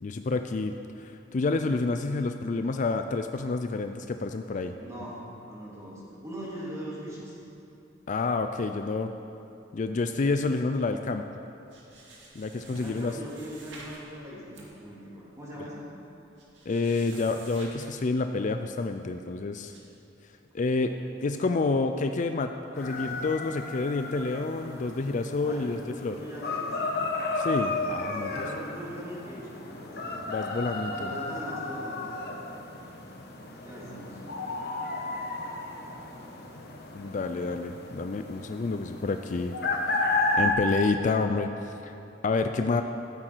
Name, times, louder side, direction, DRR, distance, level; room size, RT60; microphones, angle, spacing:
voice 1, 0.0-4.7 8.1-9.1 9.7-11.2 12.3-13.1 16.7-19.7 20.5-20.9 21.2-26.1 27.4-28.5 30.3-31.1 36.9-39.6 39.9-40.1 40.3-41.9 42.2-42.8, left 3 dB, 45° left, 7 dB, 0.4 m, -29 dB
voice 2, 4.8-7.4 12.8-15.8 25.4-30.2 31.0-32.1 33.6-34.3, equal, 15° right, -6 dB, 2.7 m, -41 dB
sound 1, 11.7-14.0 14.4-14.7 15.4-15.5 15.7-15.8 16.4-17.9 18.4-18.6 19.7-19.8, right 2 dB, 80° right, 2.2 m, -49 dB
sound 2, 22.7-40.5, left 2 dB, 60° left, 1.3 m, -33 dB
15.0 x 8.8 x 4.6 m, 2.8 s
head